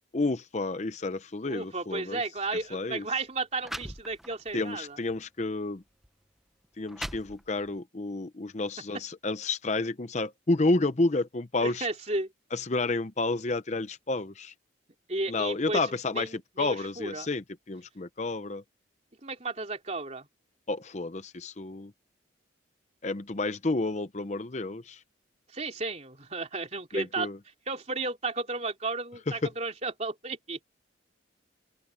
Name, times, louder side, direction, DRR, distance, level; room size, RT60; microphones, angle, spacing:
voice 1, 0.1-2.2 2.7-3.0 4.5-5.8 6.8-11.9 12.5-14.5 15.3-18.6 20.7-21.9 23.0-25.0 26.9-27.4, left 2 dB, 35° left, 0.7 m, -30 dB
voice 2, 1.5-5.0 8.8-8.9 11.6-12.3 15.1-17.3 19.2-20.3 25.5-27.3 27.7-30.6, right 3 dB, 35° right, 3.3 m, -33 dB
sound 1, 2.4-2.6 3.3-3.4 3.6-4.5 5.1-5.3 6.0-6.1 6.6-7.8, equal, ahead, 0.7 m, -40 dB
open air
head